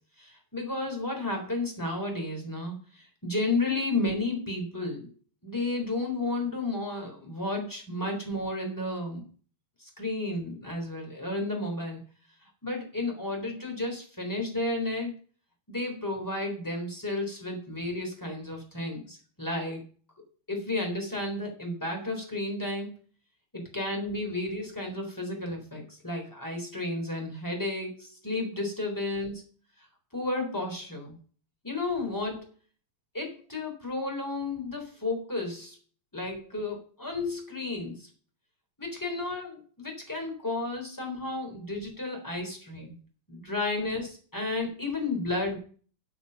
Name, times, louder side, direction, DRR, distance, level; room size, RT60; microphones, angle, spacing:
voice 1, 0.2-5.1 5.4-9.2 9.8-12.1 12.4-15.1 15.7-19.8 20.5-22.9 23.5-29.4 30.1-31.2 31.6-32.5 33.1-35.7 36.1-38.1 38.8-43.0 43.3-45.6, left 2 dB, 5° left, 2 dB, 3.2 m, -32 dB
8.9 x 7.2 x 6.9 m, 0.41 s
omnidirectional pair, 4.0 m